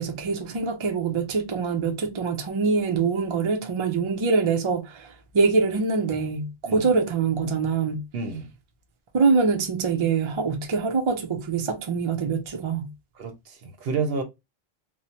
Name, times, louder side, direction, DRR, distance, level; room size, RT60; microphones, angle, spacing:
voice 1, 0.0-8.0 9.1-12.9, right 4 dB, 40° right, 0.5 m, -24 dB
voice 2, 8.1-8.5 13.2-14.2, right 4 dB, 70° right, 0.9 m, -30 dB
2.8 x 2.0 x 2.7 m
omnidirectional pair, 1.1 m